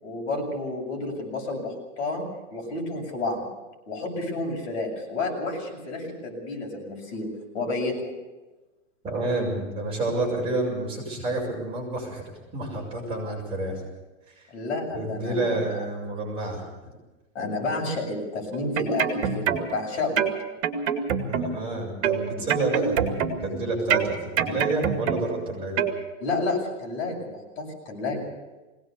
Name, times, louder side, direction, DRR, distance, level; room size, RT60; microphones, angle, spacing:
voice 1, 0.0-2.2 2.5-3.5 3.9-7.3 7.5-7.9 14.5-15.6 17.3-20.2 26.2-28.3, left 2 dB, 55° left, 0 dB, 7.3 m, -30 dB
voice 2, 9.0-13.9 14.3-14.5 14.9-16.6 21.1-25.8, right 2 dB, 15° right, -4 dB, 5.8 m, -29 dB
sound 1, 18.5-19.8 20.2-21.7 22.0-23.6 23.9-25.4 25.8-26.0, right 8 dB, 55° right, 2.2 m, -26 dB
22.0 x 18.0 x 6.9 m, 1.1 s
supercardioid pair, 175°, 38 cm